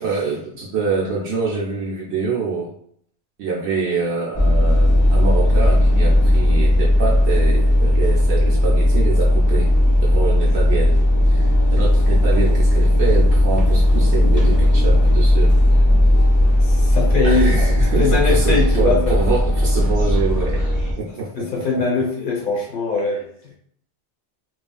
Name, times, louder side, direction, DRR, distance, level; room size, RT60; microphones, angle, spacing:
voice 1, 0.0-2.7 3.4-9.7 10.0-11.0 11.3-15.8 17.2-21.6, right 4 dB, 75° right, -5 dB, 0.9 m, -25 dB
sound 1, 4.3-20.9, left 1 dB, 30° left, 0.4 m, -16 dB
voice 2, 16.6-17.6 18.0-19.2 21.1-23.5, left 4 dB, 50° left, -2 dB, 1.0 m, -22 dB
3.1 x 2.4 x 2.3 m, 0.65 s
omnidirectional pair, 1.2 m